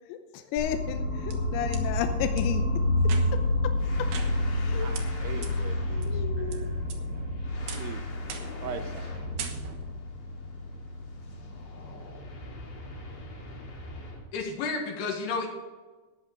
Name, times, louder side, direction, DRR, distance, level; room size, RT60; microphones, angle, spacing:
voice 1, 0.1-3.4 4.5-5.1 5.4-5.5 6.0-6.6, left 9 dB, 85° left, 7 dB, 3.0 m, -34 dB
sound 1, 0.6-12.5, left 1 dB, 30° left, 1.7 m, -30 dB
sound 2, 0.9-1.8 2.4-2.5 3.0-3.5 4.1-4.7 4.9-5.0 5.4-5.5 6.0-6.6 6.9-7.3 7.7-7.9 8.3-8.6 8.9-9.1 9.4-9.9, right 7 dB, 65° right, 2.7 m, -41 dB
sound 3, 3.8-14.3, equal, 55° left, 3.8 m, -42 dB
voice 2, 4.8-6.8 7.7-8.1 8.6-9.3, right 8 dB, 85° right, 7 dB, 2.5 m, -41 dB
voice 3, 14.3-15.5, left 4 dB, 70° left, 2 dB, 3.9 m, -31 dB
13.5 x 9.8 x 5.0 m, 1.3 s
omnidirectional pair, 5.3 m